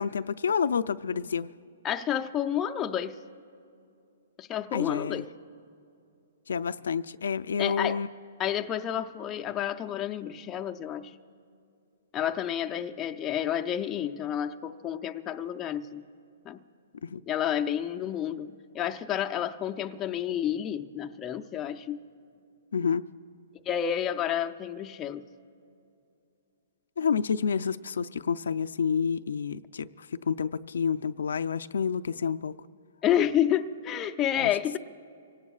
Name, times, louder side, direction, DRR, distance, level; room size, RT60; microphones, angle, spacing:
voice 1, 0.0-1.5 4.7-5.2 6.5-8.1 17.0-17.2 22.7-23.0 27.0-32.6 34.4-34.5, left 6 dB, 85° left, 11 dB, 0.4 m, -29 dB
voice 2, 1.8-3.2 4.4-5.3 7.6-8.0 8.4-11.1 12.1-16.0 16.4-16.6 17.3-22.0 23.7-25.2 33.0-34.8, left 10 dB, 15° left, 6 dB, 0.5 m, -30 dB
25.5 x 18.0 x 2.4 m, 2.5 s
hypercardioid pair, 165°, 0 cm